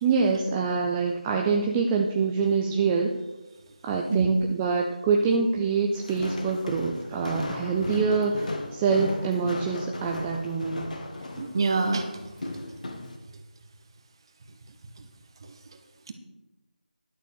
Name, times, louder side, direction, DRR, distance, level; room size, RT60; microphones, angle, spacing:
voice 1, 0.0-3.2 3.8-10.9, right 5 dB, 10° right, 1 dB, 0.3 m, -25 dB
Walk footsteps, 5.9-13.2, left 2 dB, 50° left, 1.6 m, -36 dB
voice 2, 11.3-12.2 16.1-16.2, right 4 dB, 30° right, 6 dB, 1.2 m, -26 dB
11.5 x 6.6 x 6.5 m, 1.0 s
figure-of-eight pair, 165°, 5 cm